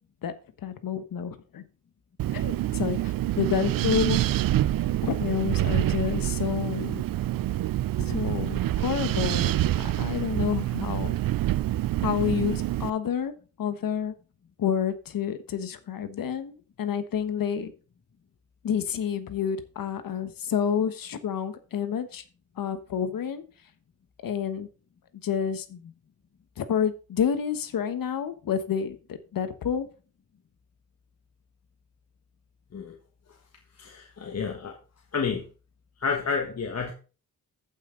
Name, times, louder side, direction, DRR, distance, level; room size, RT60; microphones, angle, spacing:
voice 1, 0.6-1.6 2.3-4.2 5.0-7.0 8.0-11.2 12.0-13.3 13.6-14.1 14.6-17.7 18.6-22.2 22.6-23.4 24.2-24.7 25.2-25.9 26.6-29.9, left 8 dB, 70° left, 10 dB, 1.4 m, -29 dB
Wind, 2.2-12.9, right 14 dB, 70° right, 0.5 m, -27 dB
voice 2, 33.8-34.8 35.1-35.4 36.0-36.9, left 5 dB, 45° left, 2 dB, 1.5 m, -30 dB
14.5 x 5.9 x 3.9 m, 0.35 s
cardioid pair, 105°, 35 cm